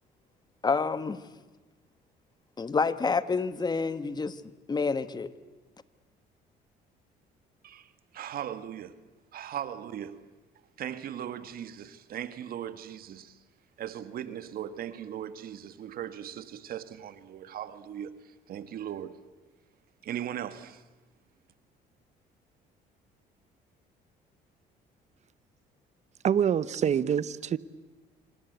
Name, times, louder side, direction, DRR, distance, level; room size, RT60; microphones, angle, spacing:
voice 1, 0.6-1.2 2.6-4.4 4.7-5.3, left 4 dB, 25° left, 1.3 m, -28 dB
voice 2, 7.6-8.9 9.3-10.2 10.8-13.4 13.8-18.2 18.5-19.2 20.0-20.8, right 10 dB, 60° right, 1.5 m, -38 dB
voice 3, 26.2-27.6, right 8 dB, 45° right, 0.9 m, -25 dB
27.0 x 26.0 x 8.1 m
cardioid pair, 110°, 17 cm